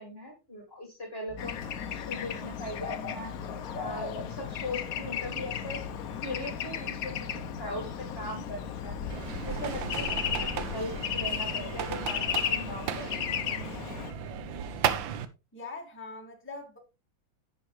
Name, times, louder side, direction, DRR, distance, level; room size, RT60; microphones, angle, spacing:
voice 1, 0.0-3.3 3.7-5.9 6.2-10.1 10.4-13.2, left 1 dB, 30° left, 2.5 m, -40 dB
sound 1, 1.3-15.0, left 4 dB, 20° right, 3.8 m, -46 dB
Bird / Traffic noise roadway noise, 1.4-14.1, left 8 dB, 60° left, 0.9 m, -35 dB
sound 2, 9.1-15.2, right 9 dB, 70° right, 1.5 m, -35 dB
voice 2, 15.5-16.8, left 3 dB, 5° left, 1.9 m, -42 dB
10.5 x 8.0 x 3.1 m
omnidirectional pair, 2.3 m